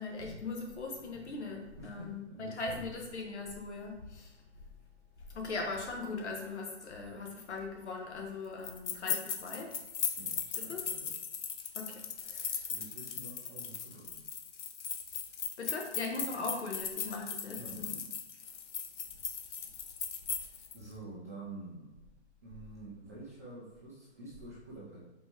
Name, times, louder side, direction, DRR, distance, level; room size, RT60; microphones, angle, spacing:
voice 1, 0.0-4.3 5.3-9.7 10.6-10.8 11.8-11.9 15.6-17.9, left 3 dB, 75° left, 1 dB, 1.2 m, -39 dB
voice 2, 1.8-3.0 10.2-11.1 12.7-14.2 17.4-18.0 20.4-21.9 22.4-25.0, right 2 dB, 15° right, -7 dB, 0.3 m, -48 dB
sound 1, 8.6-20.8, left 7 dB, 90° left, 0.6 m, -38 dB
4.2 x 3.3 x 3.0 m, 1.0 s
hypercardioid pair, 140°, 35 cm